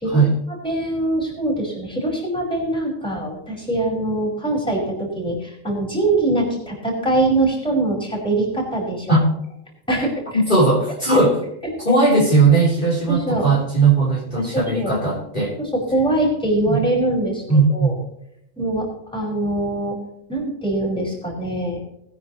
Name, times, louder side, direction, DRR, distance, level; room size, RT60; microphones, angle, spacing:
voice 1, 0.6-9.2 9.9-10.4 13.1-13.5 14.4-15.0 15.6-17.4 17.7-17.9 18.6-20.0 20.3-21.8, right 2 dB, 5° left, -2 dB, 5.5 m, -23 dB
voice 2, 10.5-11.4 11.8-15.5 16.6-16.8 17.5-17.9, right 3 dB, 35° left, -5 dB, 3.8 m, -17 dB
21.0 x 9.7 x 3.1 m, 0.77 s
omnidirectional pair, 1.4 m